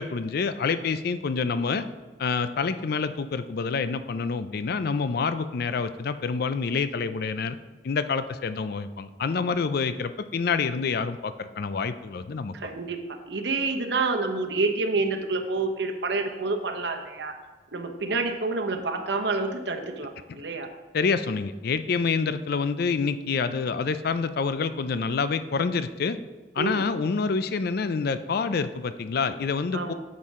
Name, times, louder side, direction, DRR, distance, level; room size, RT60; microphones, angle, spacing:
voice 1, 0.0-1.8 2.2-7.6 7.8-12.7 20.9-26.2 26.6-29.9, left 5 dB, 55° left, 12 dB, 0.4 m, -27 dB
voice 2, 12.5-17.3 17.7-20.7 26.6-26.8 29.7-29.9, right 3 dB, 65° right, 4 dB, 0.9 m, -28 dB
9.5 x 7.5 x 3.7 m, 1.3 s
head